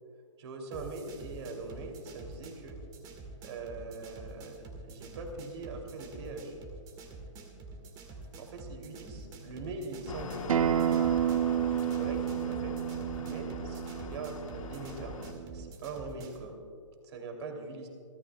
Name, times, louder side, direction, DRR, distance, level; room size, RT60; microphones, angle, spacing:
voice 1, 0.4-2.8 3.4-4.5 4.8-6.5 8.4-10.8 11.5-12.8 13.1-16.5 17.0-17.9, right 3 dB, 55° right, 3 dB, 2.9 m, -42 dB
sound 1, 0.7-16.4, right 3 dB, 25° right, 1.8 m, -47 dB
sound 2, 10.1-15.3, left 6 dB, 80° left, 1.3 m, -43 dB
Acoustic guitar, 10.5-15.7, right 10 dB, 85° right, 0.7 m, -31 dB
28.5 x 13.5 x 2.3 m, 2.2 s
hypercardioid pair, 150°, 17 cm